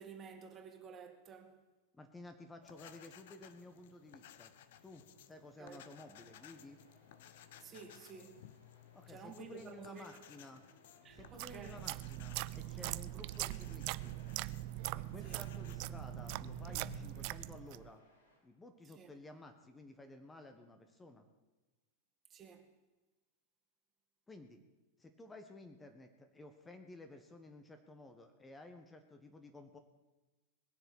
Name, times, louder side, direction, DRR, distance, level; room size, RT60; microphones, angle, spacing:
voice 1, 0.0-1.6 5.6-5.8 7.6-8.4 9.1-10.2 11.0-11.8 15.2-15.4 18.9-19.1 22.3-22.7, right 6 dB, 30° right, 2.2 m, -52 dB
voice 2, 1.9-4.5 4.8-6.8 8.9-10.7 11.1-14.2 14.9-18.0 18.4-21.2 24.3-24.6 25.0-29.8, left 2 dB, 15° left, 1.5 m, -54 dB
sound 1, 2.6-17.3, left 11 dB, 60° left, 1.1 m, -58 dB
sound 2, 5.8-18.4, left 1 dB, 75° left, 4.5 m, -68 dB
sound 3, 11.2-17.9, right 18 dB, 50° right, 0.4 m, -42 dB
20.5 x 7.0 x 8.6 m
figure-of-eight pair, 90°, 0 cm